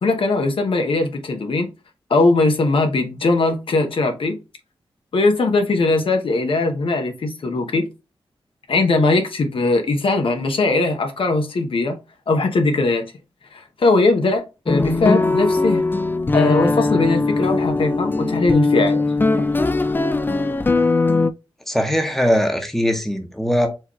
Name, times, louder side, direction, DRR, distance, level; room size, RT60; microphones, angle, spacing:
voice 1, 0.0-1.7 2.1-4.4 5.1-7.8 8.7-12.0 12.3-13.1 13.5-15.9 16.3-19.1, left 3 dB, 70° left, 0.9 m, -20 dB
sound 1, 14.7-21.3, left 3 dB, 20° left, 0.3 m, -19 dB
voice 2, 21.7-23.7, equal, 5° left, 1.1 m, -20 dB
4.7 x 3.0 x 3.0 m
wide cardioid pair, 80°, 10 cm